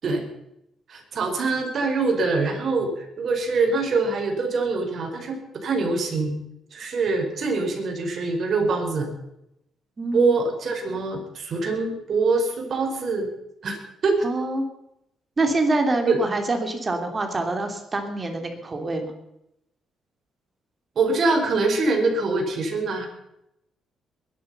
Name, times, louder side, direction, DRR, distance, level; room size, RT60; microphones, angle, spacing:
voice 1, 0.9-6.3 6.7-9.1 10.1-13.3 13.6-13.8 14.0-14.2 16.1-16.2 20.9-23.1, right 3 dB, 55° right, 3 dB, 4.6 m, -24 dB
voice 2, 10.0-10.4 14.2-14.7 15.4-19.2, right 2 dB, 30° right, 5 dB, 3.3 m, -25 dB
22.0 x 11.0 x 5.6 m, 0.82 s
cardioid pair, 90°, 0 cm